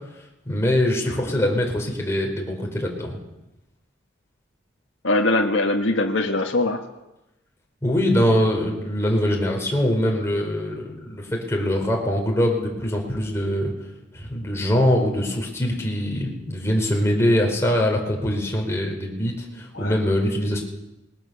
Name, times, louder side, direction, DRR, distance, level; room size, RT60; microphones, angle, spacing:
voice 1, 0.4-3.2 7.8-13.7 14.1-20.6, equal, 15° left, 0 dB, 4.8 m, -23 dB
voice 2, 5.0-6.8 19.7-20.0, left 2 dB, 80° left, 0 dB, 1.7 m, -22 dB
21.0 x 19.5 x 7.1 m, 0.96 s
head